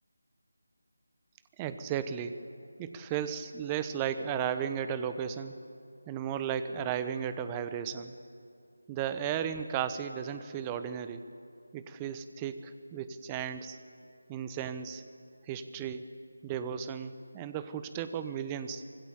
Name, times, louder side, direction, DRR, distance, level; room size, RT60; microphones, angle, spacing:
voice 1, 1.6-2.4 2.8-5.6 6.1-8.1 8.9-11.2 11.7-13.8 14.3-15.0 15.5-16.1 16.4-18.8, right 8 dB, 15° right, 11 dB, 0.9 m, -35 dB
25.0 x 22.5 x 7.1 m, 2.6 s
figure-of-eight pair, 160°, 0 cm